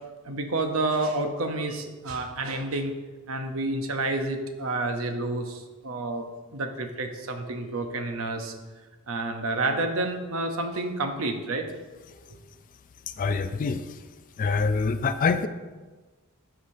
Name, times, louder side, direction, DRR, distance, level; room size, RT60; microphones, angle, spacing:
voice 1, 0.2-2.9 3.3-6.3 6.5-8.5 9.1-11.7, right 2 dB, 65° right, 6 dB, 0.8 m, -29 dB
voice 2, 13.2-13.8 14.4-15.5, left 4 dB, 40° left, 10 dB, 0.3 m, -25 dB
12.5 x 5.0 x 2.7 m, 1.3 s
head